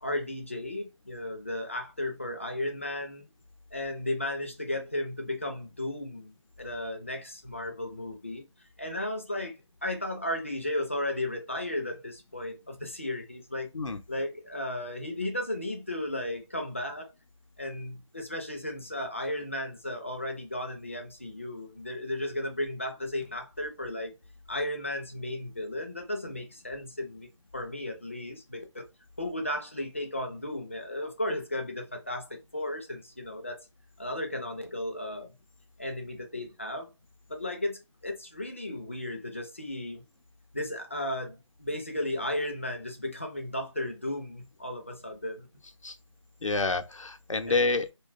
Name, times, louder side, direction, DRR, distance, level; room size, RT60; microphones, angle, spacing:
voice 1, 0.0-3.3 3.7-8.4 8.8-13.7 14.1-17.1 17.6-24.1 24.5-28.6 29.2-33.6 34.0-35.3 35.8-36.9 37.3-40.0 40.5-45.5 47.5-47.6, left 1 dB, 25° left, 0.4 m, -34 dB
voice 2, 46.4-47.9, left 3 dB, 90° left, 0.6 m, -28 dB
2.7 x 2.2 x 2.5 m
figure-of-eight pair, 160°, 16 cm